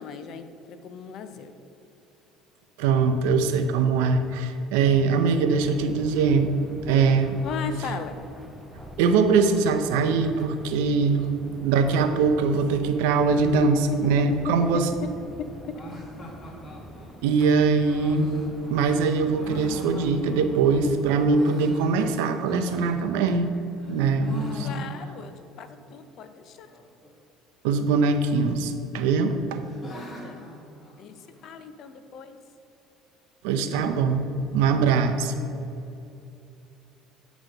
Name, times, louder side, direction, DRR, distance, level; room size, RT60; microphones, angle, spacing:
voice 1, 0.0-1.5 7.4-8.2 13.6-13.7 14.0-14.5 15.0-15.1 15.6-15.8 24.6-26.7 30.0-30.5 31.0-31.2 31.4-32.4, left 6 dB, 55° left, 9 dB, 0.6 m, -36 dB
voice 2, 2.8-6.5 6.9-7.4 9.0-11.3 11.5-14.9 17.2-18.3 18.7-23.5 23.9-24.7 27.6-29.6 33.4-35.3, right 4 dB, 85° right, 7 dB, 0.6 m, -22 dB
sound 1, 5.5-21.3, equal, 5° left, 0.8 m, -45 dB
sound 2, 15.7-20.7 21.1-23.5 23.8-25.3 25.6-25.7 25.9-26.0 26.7-27.1 28.1-28.7 29.1-31.5, left 1 dB, 30° left, 1.3 m, -42 dB
9.0 x 3.1 x 6.4 m, 2.8 s
supercardioid pair, 100°, 0 cm